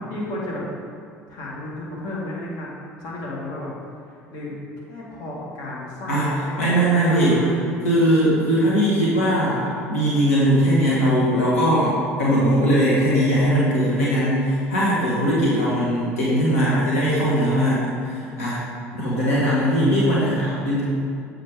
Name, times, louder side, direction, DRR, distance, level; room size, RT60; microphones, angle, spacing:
voice 1, 0.1-0.6 1.3-2.7 3.0-3.7 4.1-4.5 4.9-7.6, left 1 dB, 60° left, -5 dB, 1.8 m, -33 dB
voice 2, 6.6-7.4 7.8-18.6 18.9-20.8, equal, 80° left, -7 dB, 1.6 m, -20 dB
7.7 x 5.5 x 3.6 m, 2.4 s
hypercardioid pair, 65°, 7 cm